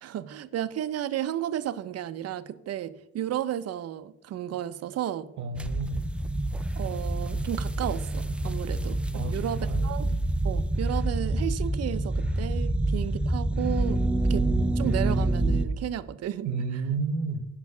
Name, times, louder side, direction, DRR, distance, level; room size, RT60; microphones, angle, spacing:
voice 1, 0.0-5.3 6.8-10.2 10.4-14.0 14.3-14.5 14.7-16.5, right 11 dB, 55° right, 0.5 m, -33 dB
voice 2, 5.4-6.0 9.1-9.9 12.7-12.8 16.4-17.4, right 4 dB, 70° right, 0.9 m, -31 dB
sound 1, 5.6-15.7, right 1 dB, 5° right, 0.3 m, -27 dB
6.4 x 5.8 x 7.0 m
cardioid pair, 130°, 31 cm